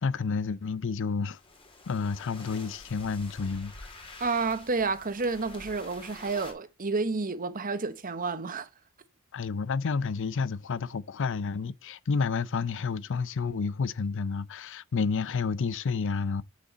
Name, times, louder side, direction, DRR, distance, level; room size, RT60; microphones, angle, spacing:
voice 1, 0.0-1.4 1.9-3.7 9.3-16.4, left 5 dB, 55° left, 0.5 m, -30 dB
sound 1, 1.3-6.5, left 2 dB, 25° left, 2.7 m, -48 dB
voice 2, 4.2-8.7, right 4 dB, 40° right, 1.0 m, -30 dB
8.1 x 6.8 x 4.0 m
head